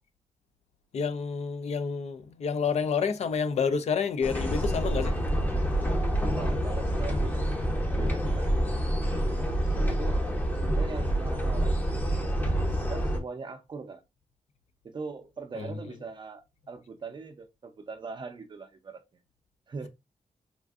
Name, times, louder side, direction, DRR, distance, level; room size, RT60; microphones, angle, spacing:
voice 1, 0.9-5.1 15.6-15.7, left 6 dB, 60° left, 0.4 m, -29 dB
sound 1, 4.2-13.2, equal, 15° left, 0.6 m, -27 dB
voice 2, 6.4-7.5 8.0-8.5 9.1-9.4 9.8-10.2 10.6-11.8 12.4-14.0 14.8-19.0 19.7-19.9, right 4 dB, 35° right, 0.5 m, -41 dB
3.5 x 2.4 x 2.3 m
wide cardioid pair, 155°, 13 cm